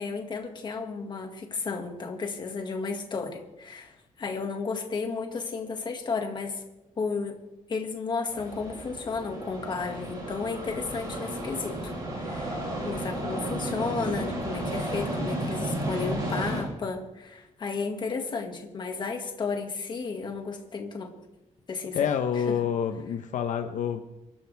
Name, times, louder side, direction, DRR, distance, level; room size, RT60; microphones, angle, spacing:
voice 1, 0.0-6.6 7.0-7.4 7.7-21.1 21.7-22.0 22.4-22.5, left 4 dB, 35° left, 3 dB, 2.0 m, -33 dB
sound 1, 8.3-16.6, right 1 dB, 30° right, 4.9 m, -33 dB
voice 2, 21.9-24.0, left 8 dB, 70° left, 6 dB, 0.9 m, -27 dB
24.5 x 12.0 x 3.5 m, 0.97 s
wide cardioid pair, 170°, 13 cm